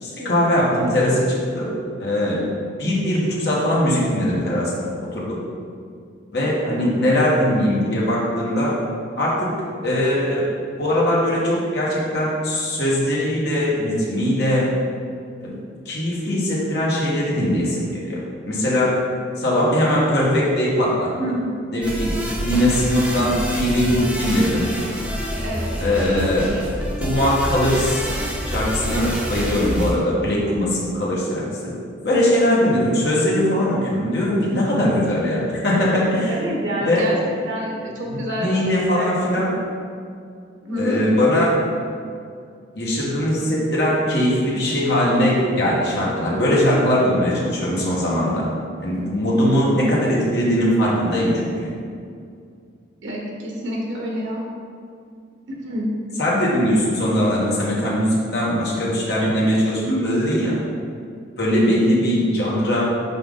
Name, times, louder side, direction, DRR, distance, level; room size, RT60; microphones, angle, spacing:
voice 1, 0.0-1.7 2.0-2.5 2.8-5.4 6.3-8.7 9.2-9.5 9.8-10.5 10.8-14.7 15.4-15.6 15.8-18.2 18.5-19.0 19.4-21.1 21.7-24.7 25.8-26.6 27.0-28.0 28.4-31.7 32.0-36.4 36.8-37.1 38.1-39.5 40.8-41.6 42.7-48.4 48.8-51.7 56.2-60.6 61.4-62.8, equal, 60° left, -6 dB, 1.5 m, -20 dB
voice 2, 6.6-6.9 21.2-21.5 25.4-25.7 36.3-38.5 38.9-39.1 40.6-41.0 49.4-49.6 53.0-54.5 55.5-55.9 59.2-59.3 59.8-60.0, equal, 80° right, -2 dB, 1.3 m, -28 dB
sound 1, 21.8-29.9, equal, 5° right, 0.7 m, -27 dB
5.7 x 5.0 x 3.9 m, 2.3 s
head